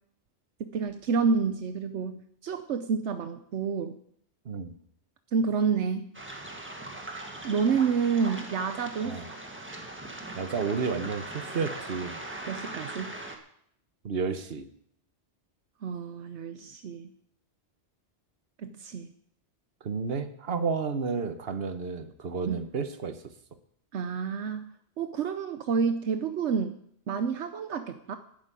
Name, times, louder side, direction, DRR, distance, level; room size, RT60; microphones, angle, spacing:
voice 1, 0.6-4.0 5.3-6.1 7.4-9.2 12.5-13.2 15.8-17.1 18.6-19.1 22.5-22.6 23.9-24.7 25.0-26.8 27.1-28.2, right 5 dB, 80° right, 8 dB, 1.1 m, -29 dB
Waves surf, 6.1-13.4, right 2 dB, 10° right, 1.6 m, -40 dB
voice 2, 10.3-12.2 14.0-14.7 19.8-23.2, right 5 dB, 60° right, 9 dB, 1.4 m, -31 dB
11.5 x 8.3 x 9.1 m, 0.69 s
omnidirectional pair, 1.2 m